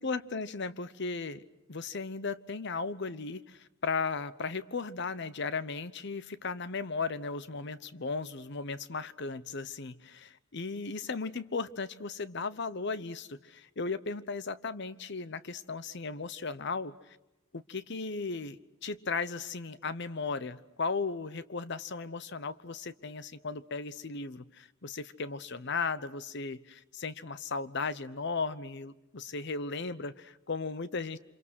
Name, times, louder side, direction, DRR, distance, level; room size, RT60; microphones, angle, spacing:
voice 1, 0.0-1.4 1.7-17.2 17.5-31.2, left 4 dB, 60° left, 15 dB, 1.0 m, -36 dB
28.0 x 26.5 x 6.3 m, 0.93 s
head